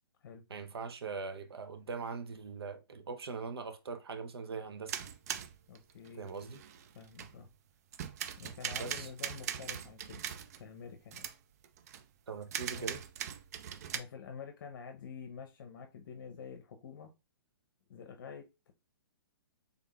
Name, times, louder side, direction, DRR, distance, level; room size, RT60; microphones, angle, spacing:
voice 1, 0.5-4.9 6.2-6.6 8.8-9.1 12.3-13.0, right 5 dB, 85° right, 0.7 m, -41 dB
sound 1, 4.9-7.5 7.9-10.7 11.1-11.4 11.6-12.0 12.4-14.0, right 9 dB, 40° right, 0.3 m, -41 dB
voice 2, 5.7-6.3 6.9-7.5 8.4-10.2 10.6-11.3 12.7-12.9 13.9-17.1 17.9-18.7, left 6 dB, 55° left, 0.7 m, -48 dB
3.7 x 3.5 x 2.3 m
hypercardioid pair, 150°, 13 cm